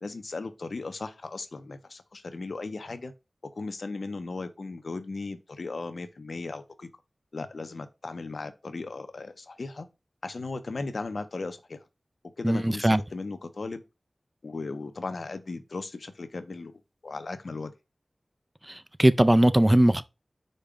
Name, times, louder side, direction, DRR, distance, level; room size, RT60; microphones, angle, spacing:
voice 1, 0.0-3.1 3.5-6.9 7.3-9.9 10.2-11.8 12.4-13.8 14.4-17.7, left 3 dB, 80° left, 0.5 m, -37 dB
voice 2, 12.4-13.0 18.7-20.0, right 1 dB, 20° right, 0.3 m, -20 dB
5.2 x 2.2 x 4.7 m
wide cardioid pair, 50°, 0 cm